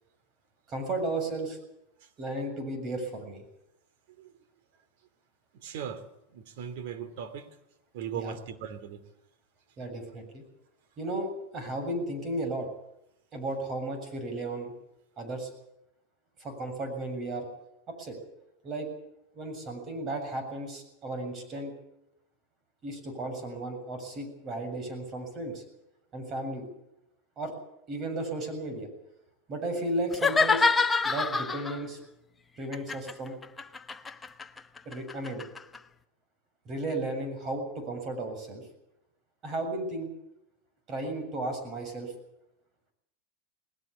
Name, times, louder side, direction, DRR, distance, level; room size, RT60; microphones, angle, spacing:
voice 1, 0.7-1.6 2.2-3.4 8.1-8.4 9.8-10.4 11.0-12.7 13.3-14.7 15.2-15.5 16.4-17.5 18.0-18.2 18.6-18.9 19.4-21.7 22.8-25.6 26.1-26.6 27.4-27.5 27.9-28.9 29.5-30.6 31.0-32.0 32.6-33.3 34.9-35.4 36.7-38.6 39.4-40.1 40.9-42.1, right 2 dB, 35° right, 7 dB, 7.4 m, -34 dB
voice 2, 5.6-6.0 6.3-7.5 7.9-9.0, right 8 dB, 70° right, 12 dB, 2.8 m, -38 dB
sound 1, 30.1-31.8 32.7-35.8, left 4 dB, 15° left, 1.0 m, -27 dB
20.0 x 17.5 x 8.5 m, 0.83 s
supercardioid pair, 120°, 0 cm